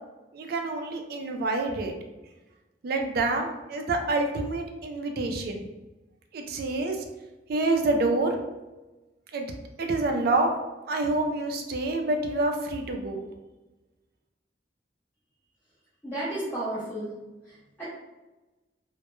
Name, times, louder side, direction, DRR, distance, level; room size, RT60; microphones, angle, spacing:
voice 1, 0.3-1.9 2.8-5.7 6.3-7.0 7.5-8.4 9.3-9.5 9.8-10.5 10.9-13.3, right 2 dB, 60° right, 4 dB, 0.4 m, -27 dB
voice 2, 16.0-17.2 17.4-17.9, right 1 dB, 10° left, -11 dB, 0.6 m, -33 dB
2.1 x 2.1 x 2.9 m, 1.1 s
head